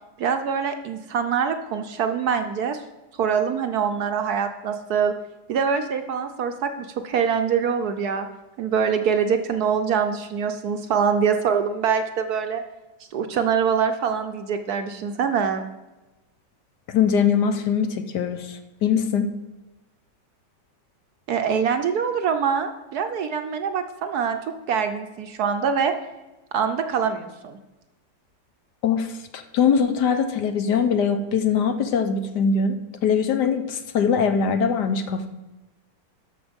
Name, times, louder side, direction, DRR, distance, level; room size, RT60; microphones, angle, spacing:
voice 1, 0.2-2.8 3.2-5.1 5.5-8.3 8.6-12.6 13.1-15.7 21.3-24.4 24.7-25.9 26.5-27.6, right 7 dB, 65° right, 7 dB, 1.1 m, -24 dB
voice 2, 16.9-19.3 28.8-32.8 33.0-35.3, left 6 dB, 65° left, 8 dB, 1.3 m, -22 dB
12.5 x 6.1 x 5.2 m, 1.1 s
omnidirectional pair, 2.0 m